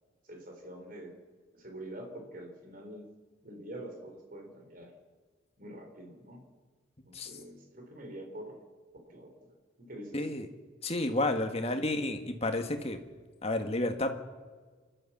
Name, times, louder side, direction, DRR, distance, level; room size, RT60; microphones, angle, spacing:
voice 1, 0.3-1.1 1.5-3.1 3.4-4.9 5.6-6.5 7.1-8.6 9.0-9.3 9.8-10.2, right 1 dB, 45° right, 3 dB, 3.8 m, -45 dB
voice 2, 10.1-10.5 10.8-13.0 13.4-14.1, left 2 dB, 30° left, 6 dB, 1.7 m, -31 dB
28.0 x 12.5 x 7.3 m, 1.5 s
head